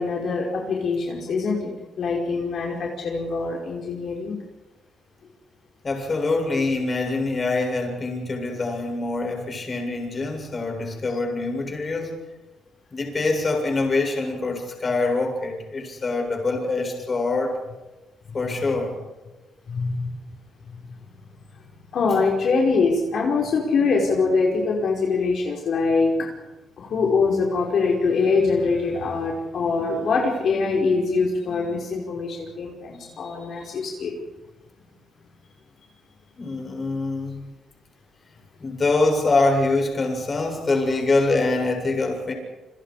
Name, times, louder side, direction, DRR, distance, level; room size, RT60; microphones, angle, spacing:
voice 1, 0.0-4.4 19.7-20.1 21.9-26.3 26.8-34.1, left 4 dB, 65° left, -1 dB, 5.3 m, -23 dB
voice 2, 5.8-12.2 12.9-17.6 18.3-19.0 36.4-37.4 38.6-42.3, left 3 dB, 35° left, 2 dB, 7.8 m, -24 dB
29.5 x 26.0 x 5.1 m, 1.1 s
cardioid pair, 100°, 0 cm